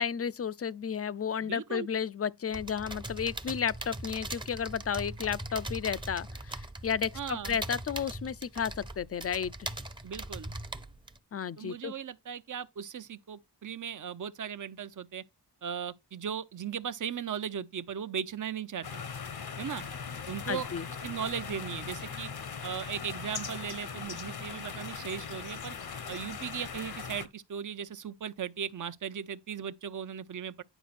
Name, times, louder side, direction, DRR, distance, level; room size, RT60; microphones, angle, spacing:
voice 1, 0.0-9.7 11.3-11.9 20.5-20.9, left 7 dB, 35° left, 0.5 m, -33 dB
voice 2, 1.4-1.9 7.1-7.6 10.0-10.5 11.6-15.2 15.6-19.0 19.6-19.8 20.3-20.7 21.0-22.3 22.6-25.8 26.1-30.6, right 8 dB, 50° right, 0.7 m, -37 dB
sound 1, 2.5-11.2, right 1 dB, 10° right, 0.7 m, -40 dB
sound 2, 18.8-27.3, left 6 dB, 65° left, 1.1 m, -40 dB
10.0 x 5.0 x 4.1 m
wide cardioid pair, 120°, 40 cm